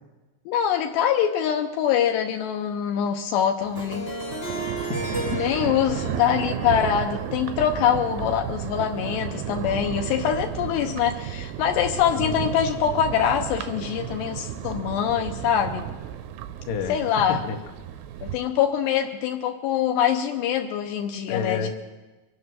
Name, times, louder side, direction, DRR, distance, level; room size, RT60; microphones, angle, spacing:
voice 1, 0.5-4.1 5.3-15.9 16.9-17.4 18.2-21.7, left 9 dB, 80° left, 4 dB, 2.7 m, -24 dB
Thunder, 3.6-18.4, right 10 dB, 85° right, 2.2 m, -33 dB
Harp, 3.7-8.7, right 1 dB, 35° left, 1.7 m, -35 dB
voice 2, 4.7-5.5 12.2-12.4 16.7-17.0 17.3-17.6 21.3-21.7, left 5 dB, 60° left, 3 dB, 2.2 m, -30 dB
23.5 x 9.5 x 6.3 m, 1.2 s
omnidirectional pair, 5.2 m